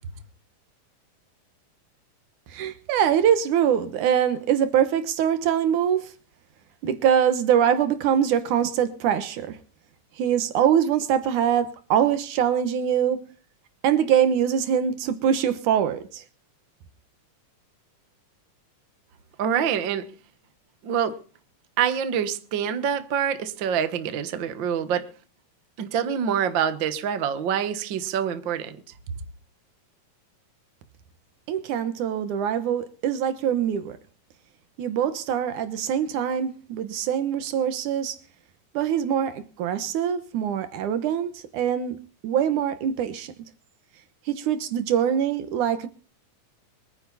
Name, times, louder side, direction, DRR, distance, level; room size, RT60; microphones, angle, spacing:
voice 1, 2.5-6.0 6.8-9.6 10.2-13.2 13.8-16.2 31.5-34.0 34.8-38.2 38.7-42.0 42.2-43.3 44.3-45.9, right 9 dB, 70° right, 2.6 m, -23 dB
voice 2, 19.4-20.0 20.8-21.2 21.8-25.0 25.8-28.8, right 8 dB, 50° right, 1.5 m, -26 dB
24.5 x 9.8 x 4.1 m
omnidirectional pair, 3.7 m